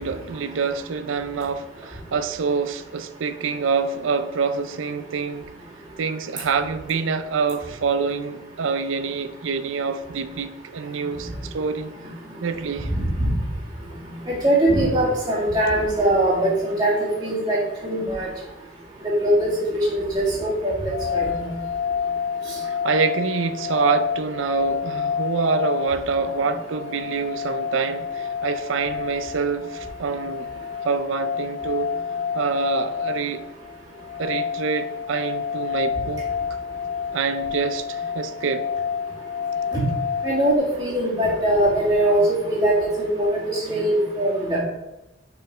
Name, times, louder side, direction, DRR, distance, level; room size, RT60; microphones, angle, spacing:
voice 1, 0.0-5.5 6.0-11.9 12.4-12.9 22.6-30.5 30.8-31.9 32.3-33.4 34.2-36.6 37.1-38.7, right 5 dB, 80° right, 0.5 m, -26 dB
voice 2, 14.3-18.3 19.0-21.5 39.7-39.8 40.2-44.6, right 1 dB, 20° right, 2.0 m, -21 dB
sound 1, 20.9-40.6, left 7 dB, 75° left, 0.4 m, -29 dB
6.5 x 4.3 x 5.5 m
head